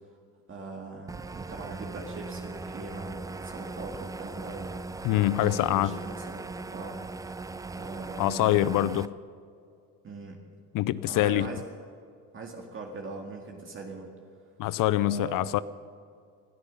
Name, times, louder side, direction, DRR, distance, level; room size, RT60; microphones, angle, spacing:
voice 1, 0.5-5.1 5.3-7.0 7.8-8.8 10.0-10.4 11.0-11.6 12.3-14.1 15.0-15.5, right 3 dB, 35° right, 1 dB, 2.0 m, -41 dB
sound 1, 1.1-9.1, right 3 dB, 10° right, 0.3 m, -39 dB
voice 2, 5.0-6.0 8.2-9.2 10.7-11.5 14.6-15.6, left 14 dB, 65° left, 16 dB, 0.6 m, -25 dB
21.0 x 12.5 x 5.5 m, 2.3 s
cardioid pair, 115°, 35 cm